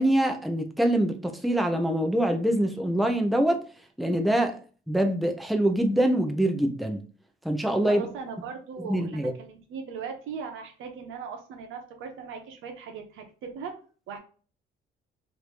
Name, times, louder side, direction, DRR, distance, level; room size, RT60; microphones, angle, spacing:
voice 1, 0.0-3.6 4.0-4.6 4.9-7.0 7.4-8.1 8.9-9.3, right 1 dB, ahead, 0.6 m, -24 dB
voice 2, 7.9-13.7 14.1-14.2, right 6 dB, 85° right, 0.8 m, -39 dB
3.1 x 2.6 x 3.3 m
cardioid pair, 90°, 20 cm